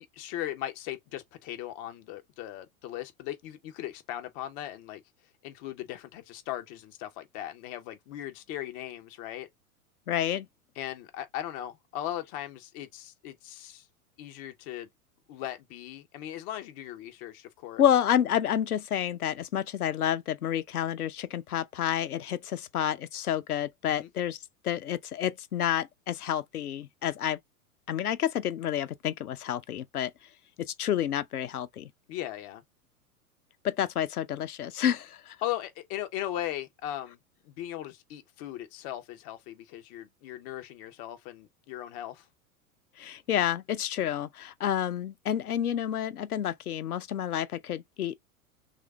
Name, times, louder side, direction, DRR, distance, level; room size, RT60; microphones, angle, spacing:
voice 1, 0.0-5.0 5.4-9.5 10.8-13.9 14.2-14.9 15.3-17.8 24.0-24.1 32.1-32.6 35.4-37.2 37.4-42.3, left 12 dB, 20° left, 0.3 m, -38 dB
voice 2, 10.1-10.5 17.8-24.4 24.6-27.4 27.9-30.1 30.6-31.9 33.6-35.4 43.0-48.2, left 10 dB, 85° left, 0.5 m, -29 dB
3.1 x 2.4 x 3.4 m
figure-of-eight pair, 95°, 43 cm